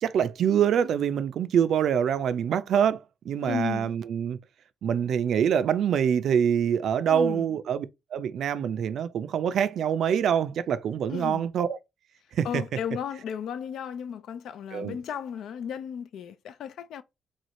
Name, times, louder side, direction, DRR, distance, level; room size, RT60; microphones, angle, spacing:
voice 1, 0.0-3.0 3.3-4.4 4.8-7.9 8.1-11.8 12.3-12.6 14.7-15.0, right 8 dB, 70° right, 0.4 m, -25 dB
voice 2, 3.4-3.9 7.1-7.6 11.1-11.4 12.4-17.0, left 8 dB, 75° left, 0.5 m, -34 dB
3.1 x 2.4 x 4.0 m
cardioid pair, 110°, 0 cm